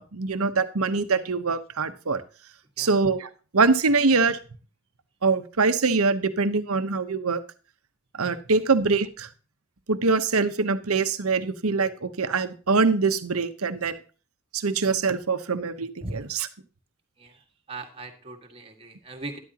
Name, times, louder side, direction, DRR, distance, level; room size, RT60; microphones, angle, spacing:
voice 1, 0.0-2.2 2.8-4.4 5.2-7.4 8.2-9.3 9.9-14.0 14.5-16.5, right 4 dB, 80° right, 11 dB, 1.0 m, -24 dB
voice 2, 17.7-19.4, right 2 dB, 25° right, 3 dB, 1.9 m, -39 dB
12.5 x 11.5 x 2.9 m, 0.36 s
head